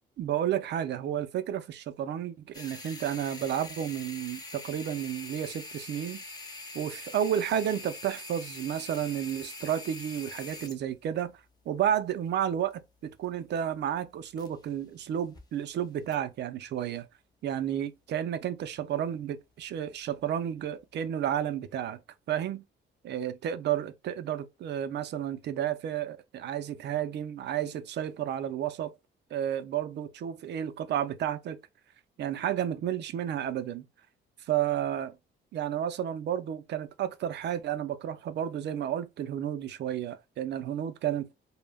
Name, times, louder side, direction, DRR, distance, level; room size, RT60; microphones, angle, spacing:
voice 1, 0.2-6.2 6.7-11.3 11.7-17.1 17.4-22.0 22.3-22.6 23.0-28.9 29.3-31.6 32.2-33.8 34.5-35.1 35.5-41.3, right 10 dB, 60° right, 0.4 m, -31 dB
sound 1, 2.5-14.8 15.1-15.4 16.1-16.2, left 2 dB, 20° left, 0.7 m, -45 dB
2.1 x 2.1 x 3.3 m
cardioid pair, 90°, 20 cm